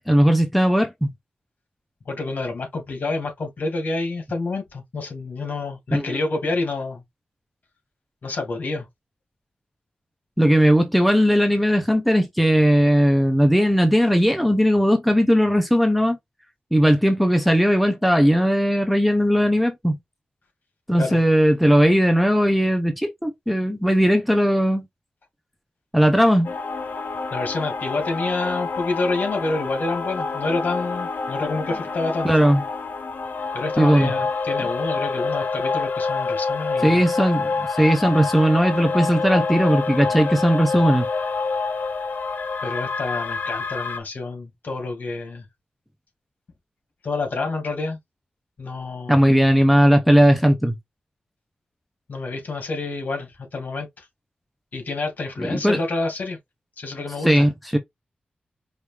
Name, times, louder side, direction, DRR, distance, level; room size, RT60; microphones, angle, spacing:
voice 1, 0.1-1.1 5.9-6.0 10.4-16.2 16.7-20.0 20.9-24.8 25.9-26.5 32.2-32.6 33.8-34.1 36.8-41.1 49.1-50.8 55.4-55.8 57.2-57.8, equal, ahead, 0.7 m, -18 dB
voice 2, 2.1-7.0 8.2-8.9 21.0-21.2 27.3-32.3 33.5-37.1 42.6-45.4 47.0-48.0 48.6-49.3 52.1-54.1 54.7-56.4 56.8-57.5, left 3 dB, 65° left, 2.1 m, -28 dB
sound 1, 26.4-44.0, left 4 dB, 80° left, 0.8 m, -27 dB
4.9 x 2.7 x 3.3 m
wide cardioid pair, 105°, 3 cm